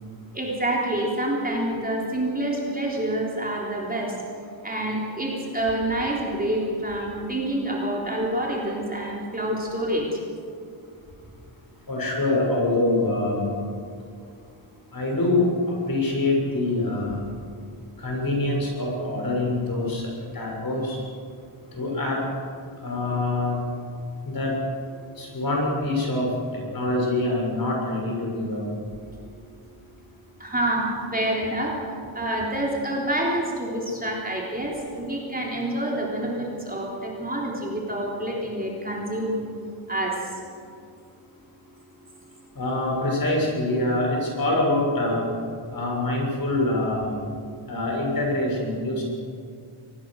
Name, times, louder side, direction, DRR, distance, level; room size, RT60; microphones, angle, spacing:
voice 1, 0.3-4.1 4.6-10.1 30.4-31.7 32.1-39.4 39.9-40.2, right 1 dB, 15° right, -3 dB, 3.7 m, -27 dB
voice 2, 11.9-13.5 14.9-17.2 18.0-21.0 21.7-22.2 22.8-23.6 24.2-24.5 25.2-28.6 42.5-45.2 45.7-47.2 47.7-49.0, left 2 dB, 45° left, -1 dB, 6.7 m, -25 dB
25.0 x 20.0 x 6.5 m, 2.3 s
wide cardioid pair, 155°, 49 cm